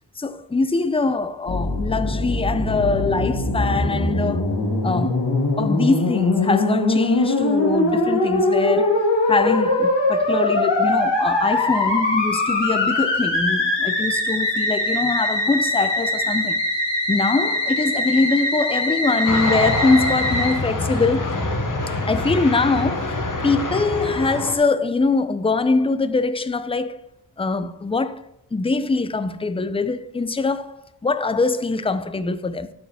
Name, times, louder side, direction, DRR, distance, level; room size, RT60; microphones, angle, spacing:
voice 1, 0.2-4.5 4.8-5.2 5.6-16.6 17.1-21.4 22.1-27.1 27.4-28.2 28.5-32.7, left 3 dB, 15° left, 0.4 m, -23 dB
Musical instrument, 1.5-20.5, left 2 dB, 90° left, 2.3 m, -22 dB
sound 1, 19.3-24.6, left 2 dB, 50° left, 1.0 m, -25 dB
12.5 x 4.8 x 3.5 m
wide cardioid pair, 85°, 42 cm